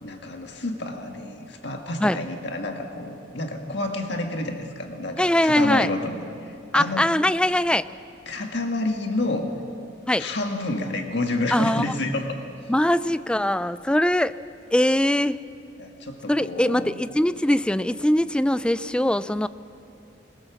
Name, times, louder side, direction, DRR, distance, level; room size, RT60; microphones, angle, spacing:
voice 1, 0.0-7.0 8.3-9.5 10.2-12.4 15.8-16.9, left 2 dB, 65° left, 4 dB, 1.8 m, -29 dB
voice 2, 5.2-5.9 6.7-7.9 10.1-10.2 11.5-11.8 12.7-14.4 14.7-15.4 16.3-19.5, left 1 dB, 5° left, 14 dB, 0.4 m, -21 dB
21.5 x 20.0 x 7.1 m, 2.6 s
head